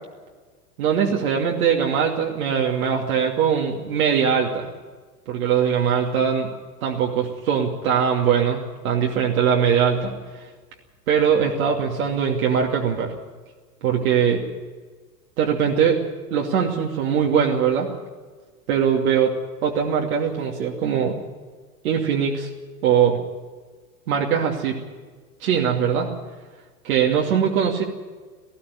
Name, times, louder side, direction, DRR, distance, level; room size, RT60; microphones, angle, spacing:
voice 1, 0.8-4.7 5.3-6.5 6.8-10.5 11.1-13.1 13.8-14.4 15.4-16.0 16.3-17.9 18.7-21.2 21.8-22.5 22.8-23.2 24.1-24.8 25.4-26.1 26.8-27.8, right 7 dB, 65° right, -1 dB, 2.7 m, -21 dB
19.0 x 14.5 x 9.6 m, 1.4 s
hypercardioid pair, 105°, 47 cm